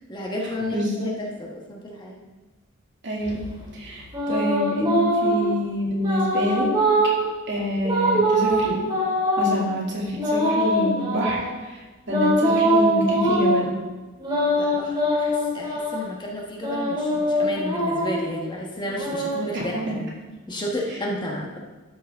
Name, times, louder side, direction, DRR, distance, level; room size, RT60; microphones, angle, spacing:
voice 1, 0.1-2.2 4.3-4.5 14.5-20.0 20.5-21.6, left 1 dB, 20° left, -2 dB, 1.2 m, -32 dB
voice 2, 0.7-1.1 3.0-3.4 3.7-6.7 7.5-8.8 9.4-11.8 12.1-13.7 19.5-19.6, equal, 55° right, -4 dB, 2.3 m, -27 dB
sound 1, 3.2-5.6 6.0-7.3 7.8-9.6 10.2-11.5 12.1-13.6 14.2-16.0 16.6-18.2 18.8-20.2, equal, 20° right, 2.6 m, -23 dB
12.5 x 6.3 x 3.5 m, 1.2 s
head